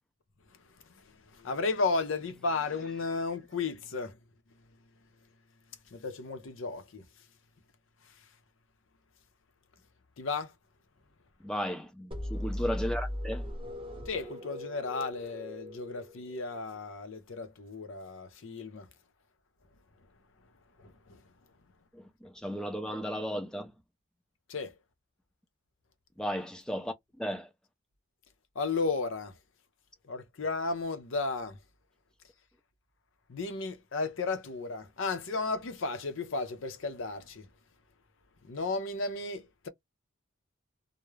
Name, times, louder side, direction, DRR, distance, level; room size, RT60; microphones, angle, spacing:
voice 1, 1.4-4.1 5.9-7.0 10.2-10.5 14.1-18.9 24.5-24.7 28.6-29.3 30.1-31.6 33.3-37.5 38.5-39.7, left 3 dB, 75° left, 0.6 m, -34 dB
voice 2, 11.4-13.5 21.9-23.7 26.2-27.5, equal, 5° left, 0.4 m, -35 dB
sound 1, 12.1-16.8, left 1 dB, 25° right, 0.8 m, -38 dB
2.3 x 2.0 x 3.0 m
head